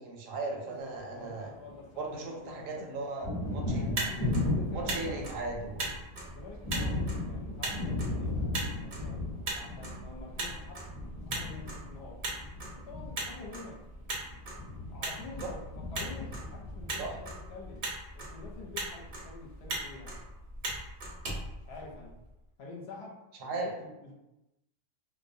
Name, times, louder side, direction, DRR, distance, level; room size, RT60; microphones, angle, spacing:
voice 1, 0.0-1.5 2.0-3.8 4.1-4.4 4.7-5.8 15.4-15.5 17.0-17.2 23.4-23.7, right 3 dB, 85° right, 1 dB, 1.0 m, -37 dB
voice 2, 0.6-2.9 3.7-5.2 6.2-9.2 9.5-10.8 11.1-12.2 12.7-13.9 14.9-17.9 18.1-20.2 21.7-22.1 22.6-24.1, left 3 dB, 60° left, -2 dB, 0.8 m, -47 dB
Thunder, 1.0-2.2 2.5-17.7, left 2 dB, 25° left, 0.6 m, -36 dB
Motor vehicle (road), 3.7-22.3, right 2 dB, 50° right, 0.5 m, -40 dB
2.3 x 2.1 x 2.6 m, 0.98 s
omnidirectional pair, 1.3 m